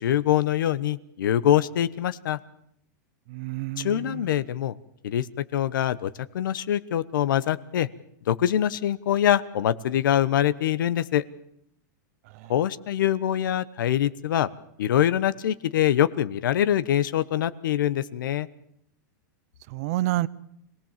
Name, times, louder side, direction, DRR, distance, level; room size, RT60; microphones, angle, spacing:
voice 1, 0.0-2.4 3.8-4.7 5.0-7.9 8.3-11.2 12.5-14.5 14.8-18.5, left 11 dB, 80° left, 15 dB, 1.0 m, -24 dB
voice 2, 3.3-4.3 12.3-12.5 19.7-20.3, right 16 dB, 50° right, 19 dB, 0.8 m, -29 dB
26.0 x 18.5 x 7.4 m, 0.73 s
supercardioid pair, 155°, 11 cm